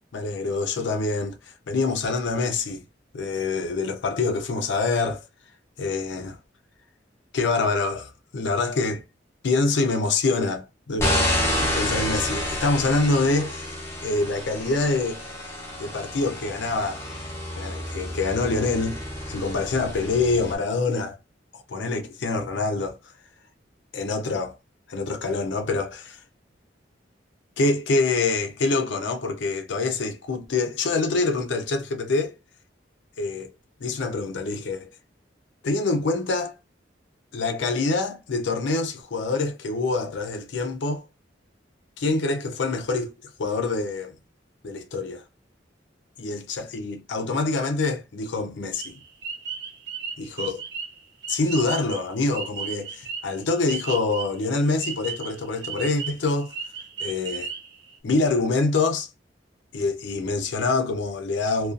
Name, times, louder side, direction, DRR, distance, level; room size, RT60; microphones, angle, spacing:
voice 1, 0.1-1.4 1.7-2.8 3.1-5.2 5.8-6.4 7.3-9.0 9.4-11.1 11.6-13.7 14.0-15.2 15.8-17.0 17.6-19.0 19.3-21.2 21.5-23.0 23.9-24.6 24.9-26.2 27.6-32.3 33.2-33.5 33.8-34.9 35.6-36.5 37.3-41.0 42.0-43.1 43.4-44.1 44.6-45.2 46.2-49.0 50.2-50.6 51.3-56.5 57.0-57.5 58.0-59.1 59.7-61.7, left 3 dB, 75° left, 0.5 m, -25 dB
sound 1, 11.0-20.5, left 1 dB, 15° left, 0.6 m, -29 dB
sound 2, 48.7-54.4 54.8-58.0, right 6 dB, 65° right, 0.6 m, -35 dB
2.4 x 2.3 x 2.5 m
head